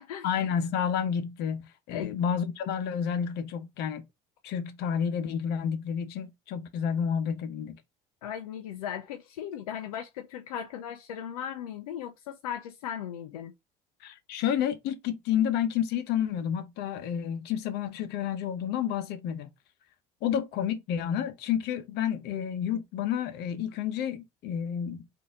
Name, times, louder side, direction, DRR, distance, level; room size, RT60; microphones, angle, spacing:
voice 1, 0.2-4.1 4.4-7.8 14.0-19.5 20.2-25.0, left 8 dB, 65° left, 0.9 m, -30 dB
voice 2, 8.2-13.5, left 9 dB, 90° left, 0.6 m, -37 dB
4.0 x 2.8 x 3.6 m
hypercardioid pair, 70°, 18 cm